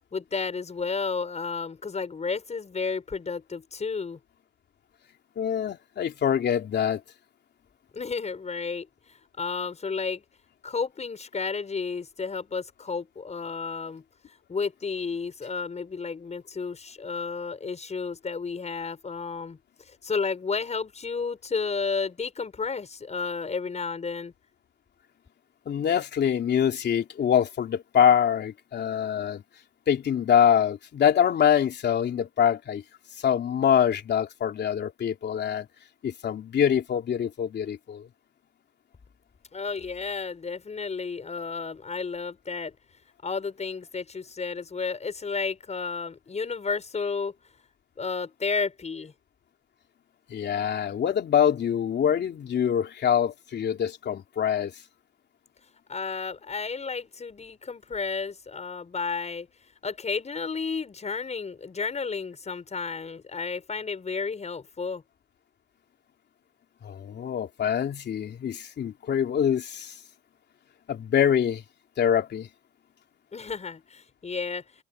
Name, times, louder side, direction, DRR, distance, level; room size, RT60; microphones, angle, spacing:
voice 1, 0.1-4.2 7.9-8.9 9.4-10.2 10.6-14.0 14.5-19.6 19.9-24.3 39.5-42.7 43.2-47.3 48.0-49.1 55.9-59.5 59.8-65.0 73.3-74.6, left 5 dB, 35° left, 5.9 m, -32 dB
voice 2, 5.4-7.0 25.6-29.4 29.9-32.8 33.2-35.7 36.0-38.1 50.3-54.7 66.8-69.9 70.9-71.6 72.0-72.5, left 8 dB, 60° left, 3.4 m, -24 dB
cardioid pair, 90°, 20 cm